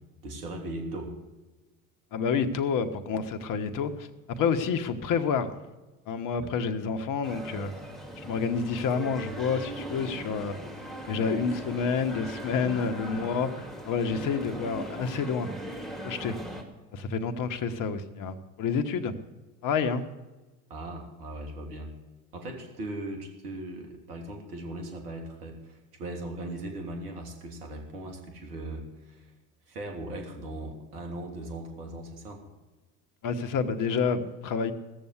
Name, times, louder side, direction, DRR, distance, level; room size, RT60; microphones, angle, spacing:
voice 1, 0.2-1.1 6.4-6.5 16.4-16.5 20.7-21.9 22.3-29.3 29.7-32.4, right 1 dB, 80° right, 2 dB, 3.2 m, -39 dB
voice 2, 2.1-4.1 4.4-5.5 6.1-7.7 8.2-10.6 11.1-15.5 16.0-16.4 16.9-19.1 19.6-20.1 33.2-34.7, left 5 dB, 45° left, 8 dB, 1.4 m, -29 dB
sound 1, 7.2-16.6, right 1 dB, ahead, 2.8 m, -39 dB
17.0 x 7.1 x 8.2 m, 1.1 s
hypercardioid pair, 80°, 45 cm